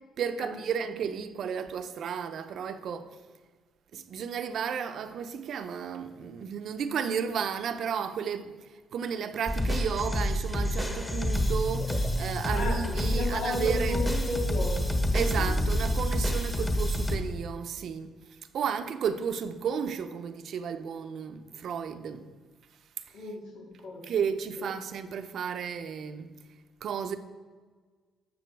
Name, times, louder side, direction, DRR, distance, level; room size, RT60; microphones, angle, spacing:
voice 1, 0.2-3.2 3.9-14.0 15.1-18.2 18.5-22.3 24.0-26.3 26.8-27.2, right 7 dB, 60° right, 0.7 m, -33 dB
sound 1, 9.5-17.2, equal, 15° left, 1.2 m, -28 dB
voice 2, 12.5-15.6 23.1-24.1 24.6-24.7, left 2 dB, 90° left, 3.5 m, -35 dB
12.0 x 7.0 x 4.6 m
cardioid pair, 120°, 0 cm